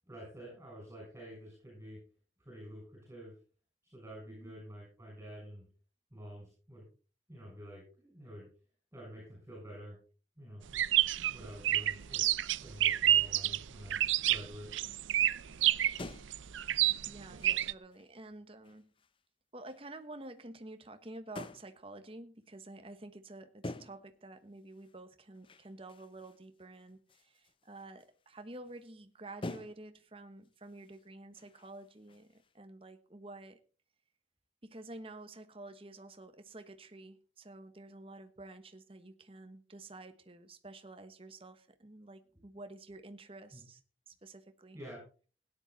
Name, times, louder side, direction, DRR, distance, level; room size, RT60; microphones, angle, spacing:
voice 1, 0.1-2.0 2.4-3.3 3.8-5.6 6.1-6.9 7.3-8.5 8.9-10.0 10.4-12.3 12.6-14.7 42.3-42.4 43.5-43.6 44.7-45.0, equal, 15° right, 7.0 m, -49 dB
sound 1, 10.7-17.7, right 12 dB, 85° right, 0.5 m, -29 dB
sound 2, 12.7-13.7 14.0-14.6 15.1-15.2 15.4-18.3 18.6-19.2 19.7-19.9 21.4-21.8 23.6-24.2 24.6-28.9 29.4-30.1 30.4-32.6, left 2 dB, 30° left, 0.6 m, -50 dB
voice 2, 17.0-18.9 19.5-33.6 34.6-43.8 44.1-44.8, right 2 dB, 30° right, 1.2 m, -50 dB
17.0 x 10.0 x 4.1 m
head